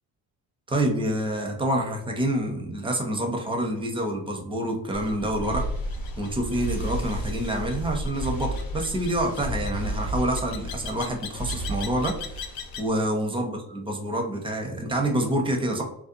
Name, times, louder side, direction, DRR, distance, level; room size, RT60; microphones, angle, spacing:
voice 1, 0.7-5.6 6.2-15.8, right 1 dB, 15° right, 2 dB, 0.5 m, -27 dB
sound 1, 4.9-12.9, left 2 dB, 65° left, 0.5 m, -35 dB
sound 2, 5.4-12.8, right 2 dB, 45° left, 0.9 m, -35 dB
2.5 x 2.2 x 2.6 m, 0.73 s
cardioid pair, 85°, 41 cm